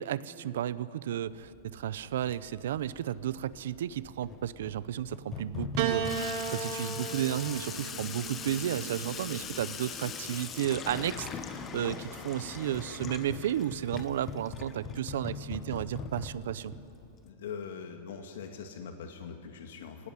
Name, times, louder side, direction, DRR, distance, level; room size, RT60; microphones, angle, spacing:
voice 1, 0.0-16.7, right 11 dB, 75° right, 17 dB, 0.7 m, -33 dB
Water tap faucet / Sink (filling or washing), 1.3-17.3, left 6 dB, 15° left, 1.0 m, -41 dB
Piano, 5.8-10.3 11.3-12.0, right 7 dB, 40° right, 1.5 m, -36 dB
voice 2, 17.2-20.1, left 6 dB, 80° left, 5 dB, 1.9 m, -42 dB
25.0 x 17.5 x 9.9 m, 2.8 s
supercardioid pair, 175°, 0 cm